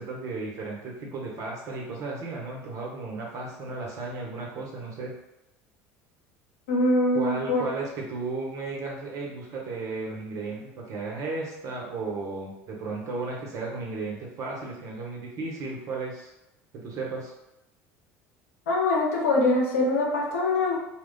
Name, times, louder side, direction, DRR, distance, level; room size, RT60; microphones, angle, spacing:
voice 1, 0.0-5.1 7.1-16.3 16.7-17.3, right 3 dB, 50° right, -2 dB, 1.0 m, -34 dB
voice 2, 6.7-7.6 18.7-20.8, left 2 dB, 90° left, -2 dB, 0.7 m, -23 dB
2.3 x 2.1 x 3.8 m, 0.94 s
hypercardioid pair, 85°, 7 cm